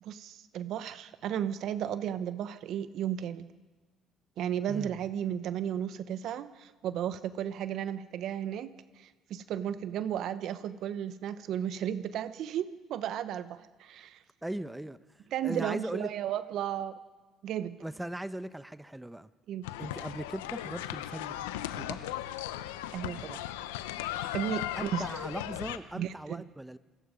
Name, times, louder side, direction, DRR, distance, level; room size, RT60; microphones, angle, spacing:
voice 1, 0.0-3.5 4.4-14.2 15.3-16.9 17.4-17.8 19.5-19.7 22.9-23.4 24.3-25.1 25.9-26.4, right 10 dB, 65° right, 12 dB, 1.0 m, -34 dB
voice 2, 14.4-15.0 15.4-16.1 17.8-19.3 19.8-21.5 21.7-22.1 24.8-26.8, right 1 dB, 10° right, 13 dB, 1.0 m, -39 dB
sound 1, 19.6-25.8, left 13 dB, 90° left, 0.9 m, -37 dB
27.0 x 21.5 x 5.2 m, 1.3 s
hypercardioid pair, 60°, 0 cm